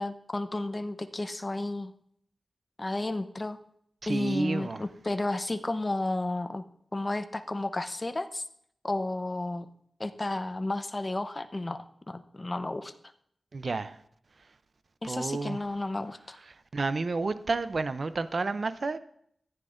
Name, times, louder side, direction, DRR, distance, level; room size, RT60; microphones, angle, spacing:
voice 1, 0.0-1.9 2.8-3.6 4.1-6.6 6.9-8.4 8.8-9.7 10.0-12.9 15.0-16.4, left 2 dB, 30° left, 0.8 m, -32 dB
voice 2, 4.0-4.8 13.5-14.0 15.0-15.6 16.7-19.0, right 3 dB, 60° right, 0.5 m, -30 dB
14.5 x 9.8 x 2.6 m
cardioid pair, 50°, 0 cm